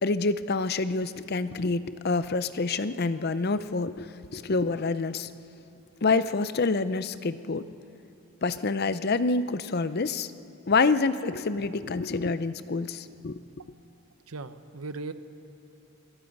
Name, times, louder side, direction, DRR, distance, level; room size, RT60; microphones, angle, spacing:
voice 1, 0.0-5.3 6.0-7.7 8.4-10.3 10.7-13.4, left 3 dB, 45° left, 13 dB, 0.6 m, -27 dB
voice 2, 14.3-15.1, right 3 dB, 80° right, 10 dB, 1.0 m, -37 dB
26.0 x 21.5 x 5.4 m, 2.7 s
head